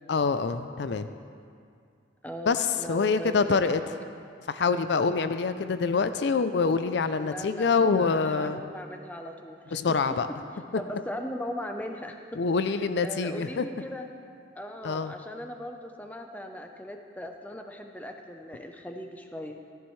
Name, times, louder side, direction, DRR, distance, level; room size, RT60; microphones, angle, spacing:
voice 1, 0.1-1.1 2.5-3.8 4.5-8.6 9.7-10.3 12.4-13.7 14.8-15.1, left 4 dB, 65° left, 10 dB, 0.4 m, -25 dB
voice 2, 2.2-4.0 7.2-10.0 10.8-12.2 13.0-14.1 14.6-19.6, equal, 10° left, 4 dB, 0.6 m, -39 dB
14.0 x 14.0 x 3.2 m, 2.3 s
head